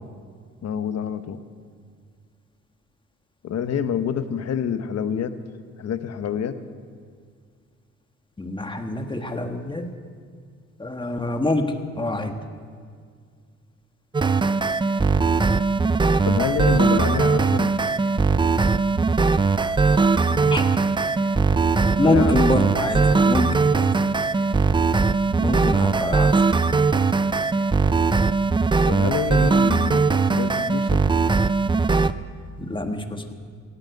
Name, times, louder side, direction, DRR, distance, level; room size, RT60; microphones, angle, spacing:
voice 1, 0.6-1.4 3.4-5.3 5.8-6.6 16.2-17.7 22.0-22.4 23.1-23.5 28.9-31.0, left 8 dB, 60° left, 10 dB, 1.1 m, -27 dB
voice 2, 8.4-9.9 10.8-12.3 20.3-20.7 22.0-23.9 25.4-26.4 32.6-33.3, left 2 dB, 15° left, 5 dB, 1.5 m, -25 dB
sound 1, 14.1-32.1, right 4 dB, 15° right, 0.4 m, -20 dB
17.5 x 9.5 x 8.4 m, 2.1 s
cardioid pair, 90°, 30 cm